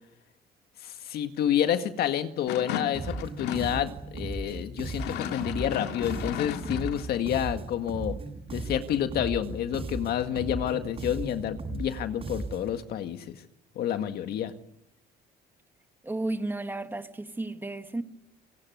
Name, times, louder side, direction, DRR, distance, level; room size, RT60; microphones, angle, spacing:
voice 1, 0.8-8.2 8.5-13.4 13.8-14.5, left 10 dB, 70° left, 1.9 m, -29 dB
sound 1, 2.5-3.8 4.9-7.1, left 9 dB, 90° left, 2.0 m, -35 dB
sound 2, 2.9-12.8, right 3 dB, 35° right, 7.8 m, -37 dB
voice 2, 16.0-18.0, right 2 dB, 10° right, 1.9 m, -33 dB
26.5 x 18.0 x 9.5 m
cardioid pair, 110°, 17 cm